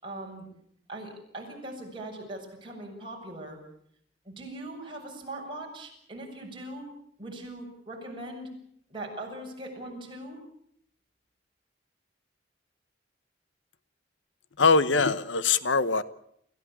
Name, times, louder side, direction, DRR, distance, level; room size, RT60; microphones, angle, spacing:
voice 1, 0.0-0.5 0.9-3.6 4.3-6.9 7.2-8.5 8.9-10.4, right 1 dB, 25° right, -1 dB, 7.0 m, -40 dB
voice 2, 14.6-16.0, left 4 dB, 85° left, 15 dB, 1.0 m, -22 dB
28.0 x 15.5 x 8.7 m, 0.70 s
head